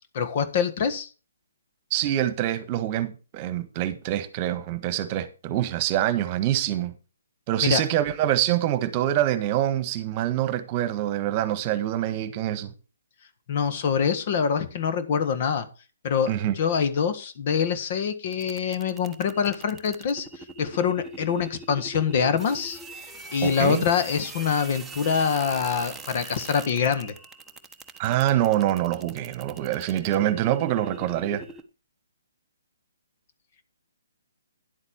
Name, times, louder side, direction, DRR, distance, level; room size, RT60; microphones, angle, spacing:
voice 1, 0.1-1.1 7.6-7.8 13.5-15.7 16.0-22.8 23.3-27.1, left 6 dB, 45° left, 1.5 m, -25 dB
voice 2, 1.9-6.9 7.5-12.7 16.3-16.5 23.4-23.8 28.0-31.4, right 12 dB, 30° right, 1.4 m, -25 dB
sound 1, 18.3-31.6, right 2 dB, 5° right, 1.1 m, -43 dB
11.0 x 8.1 x 4.4 m
hypercardioid pair, 145°, 0 cm